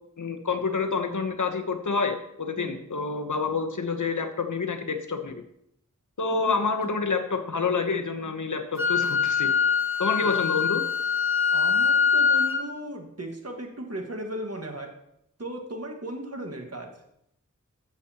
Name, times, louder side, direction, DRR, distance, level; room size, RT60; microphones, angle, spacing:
voice 1, 0.2-5.4 6.2-9.5 10.0-10.8, left 4 dB, 75° left, 6 dB, 1.0 m, -28 dB
Wind instrument woodwind instrument, 8.8-12.6, left 6 dB, 40° left, 1.6 m, -23 dB
voice 2, 11.5-14.9 15.4-16.9, right 1 dB, 50° right, 3 dB, 1.7 m, -36 dB
12.0 x 7.7 x 2.9 m, 0.75 s
wide cardioid pair, 40°, 31 cm